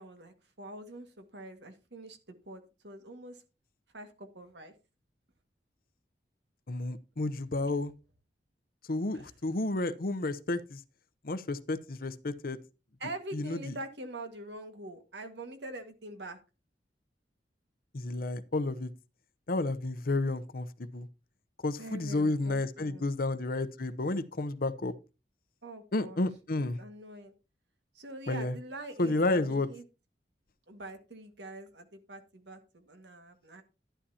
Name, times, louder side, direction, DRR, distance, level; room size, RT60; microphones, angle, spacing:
voice 1, 0.0-3.4 3.9-4.7 9.1-9.3 13.0-16.4 21.8-23.0 25.6-26.2 26.6-27.3 28.0-29.8 30.7-33.6, right 1 dB, 75° right, 1.8 m, -44 dB
voice 2, 6.7-7.9 8.9-10.8 11.2-12.6 13.3-13.8 17.9-18.9 19.5-21.1 21.6-24.9 25.9-26.8 28.3-28.6 29.0-29.7, left 2 dB, 55° left, 0.8 m, -31 dB
11.5 x 11.5 x 2.8 m
head